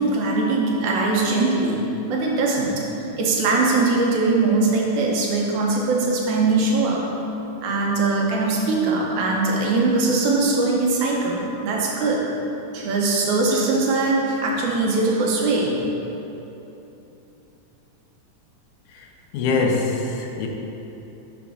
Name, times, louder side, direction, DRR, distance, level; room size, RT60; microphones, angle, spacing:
voice 1, 0.0-1.8 2.1-2.7 3.2-7.0 7.6-12.2 12.7-15.8, right 3 dB, 75° right, -2 dB, 2.2 m, -21 dB
voice 2, 19.3-20.5, left 3 dB, 80° left, 1 dB, 2.1 m, -23 dB
5.6 x 4.6 x 6.2 m, 3.0 s
omnidirectional pair, 3.7 m